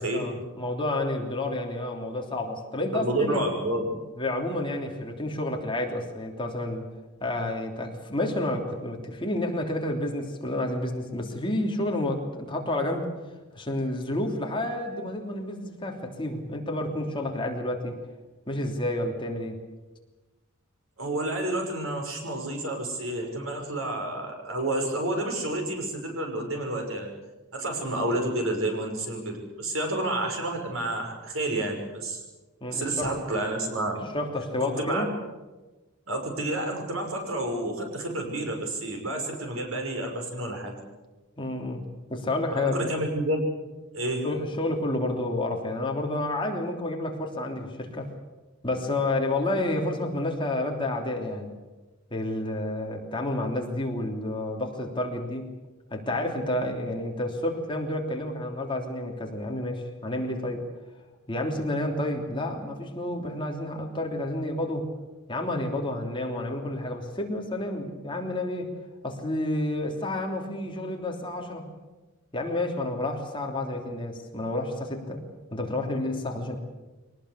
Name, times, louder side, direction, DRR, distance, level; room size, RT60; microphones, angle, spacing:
voice 1, 0.0-3.4 4.2-6.9 7.2-13.1 13.5-18.0 18.5-19.6 32.6-33.1 34.1-35.1 41.4-41.8 42.1-42.9 44.2-48.1 48.6-51.5 52.1-55.5 55.9-60.6 61.3-64.8 65.3-68.7 69.0-71.7 72.3-75.2 75.5-76.6, left 1 dB, 25° left, 1 dB, 3.2 m, -30 dB
voice 2, 2.9-3.9 21.0-27.1 27.5-32.2 32.7-33.9 34.8-35.0 36.1-40.7 42.5-43.4 43.9-44.3, right 1 dB, 80° right, 2 dB, 6.1 m, -29 dB
24.0 x 19.0 x 8.3 m, 1.2 s
head